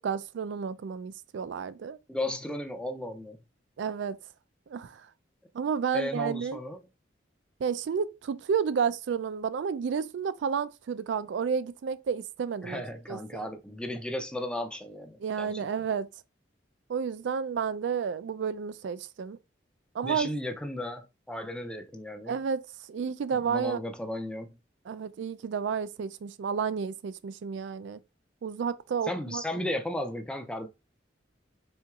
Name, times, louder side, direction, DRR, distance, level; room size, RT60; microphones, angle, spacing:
voice 1, 0.0-2.0 3.8-4.2 4.7-5.1 5.5-6.6 7.6-12.8 13.1-13.5 15.2-16.1 16.9-19.4 19.9-20.3 22.3-22.6 22.9-23.8 24.9-28.0 28.4-29.6, right 6 dB, 75° right, 0.3 m, -31 dB
voice 2, 2.1-3.4 5.9-6.8 12.6-15.7 20.0-22.4 23.3-24.6 29.0-30.7, left 1 dB, 5° left, 0.4 m, -35 dB
4.3 x 3.8 x 2.3 m
head